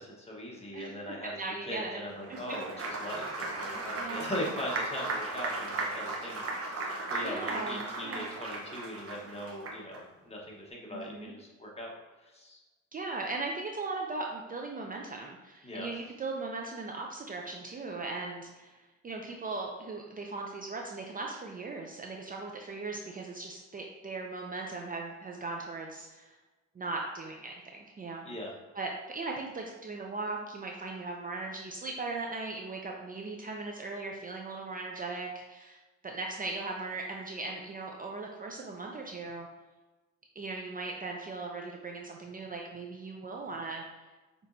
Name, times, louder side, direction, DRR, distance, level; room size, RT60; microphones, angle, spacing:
voice 1, 0.0-11.9 12.2-12.6 15.6-15.9 28.2-28.5, equal, 20° left, -2 dB, 1.2 m, -40 dB
voice 2, 0.7-2.0 2.3-2.4 2.7-2.8 4.0-4.6 7.2-8.3 10.9-11.3 12.9-26.4 26.8-28.3 28.7-35.8 36.0-39.5 40.4-43.9, right 3 dB, 30° right, 0 dB, 0.5 m, -38 dB
Applause, 2.2-10.0, right 2 dB, 50° right, 1.0 m, -36 dB
6.4 x 3.1 x 2.7 m, 1.2 s
cardioid pair, 90°, 30 cm